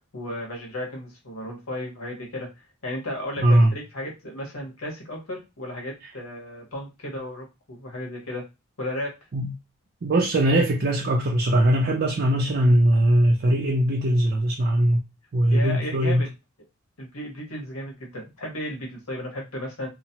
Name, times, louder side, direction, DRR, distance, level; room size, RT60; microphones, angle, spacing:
voice 1, 0.1-2.5 2.8-8.4 8.8-9.1 15.5-16.3 17.0-19.9, left 1 dB, 80° left, 1.2 m, -34 dB
voice 2, 3.4-3.7 9.3-9.5 10.0-15.0 15.3-16.2, right 1 dB, 50° right, 0.5 m, -20 dB
2.9 x 2.1 x 2.8 m
head